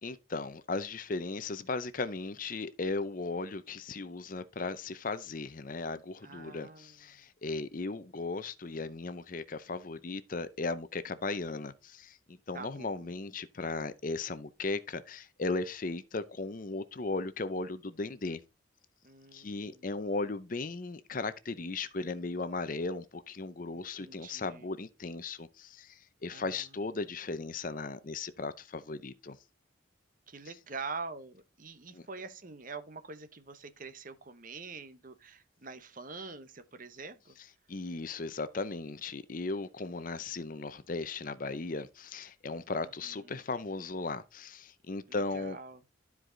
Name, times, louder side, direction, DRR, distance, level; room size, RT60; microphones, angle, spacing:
voice 1, 0.0-18.4 19.3-29.4 31.9-32.0 37.7-45.6, left 3 dB, 40° left, 0.6 m, -37 dB
voice 2, 6.2-7.2 12.5-13.2 19.0-19.9 23.7-24.7 26.3-26.7 30.3-37.4 42.7-43.3 45.1-45.8, right 4 dB, 40° right, 0.9 m, -45 dB
12.5 x 4.8 x 3.8 m
head